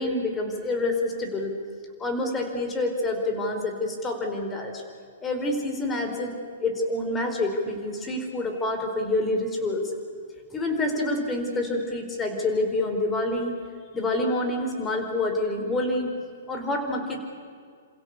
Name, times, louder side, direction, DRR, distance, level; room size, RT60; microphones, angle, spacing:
voice 1, 0.0-1.6 2.0-4.8 5.2-9.9 10.5-13.5 13.9-16.1 16.5-17.2, left 2 dB, 15° left, 3 dB, 5.1 m, -27 dB
28.0 x 27.5 x 7.0 m, 2.2 s
figure-of-eight pair, 115°, 0 cm